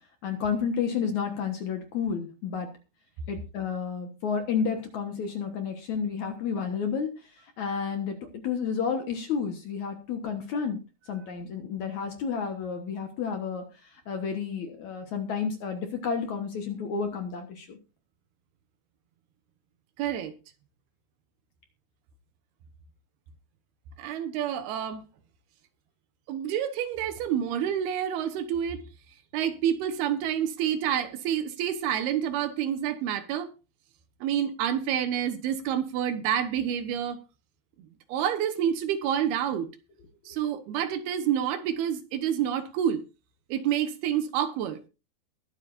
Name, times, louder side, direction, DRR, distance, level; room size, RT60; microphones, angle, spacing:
voice 1, 0.2-2.7 3.3-7.1 7.6-10.8 11.1-17.8, left 6 dB, 60° left, 2.1 m, -31 dB
voice 2, 20.0-20.3 24.0-25.0 26.3-28.8 29.3-33.5 34.2-37.2 38.1-39.7 40.3-43.0 43.5-44.8, right 9 dB, 75° right, 3.0 m, -28 dB
21.5 x 8.3 x 2.6 m
omnidirectional pair, 4.7 m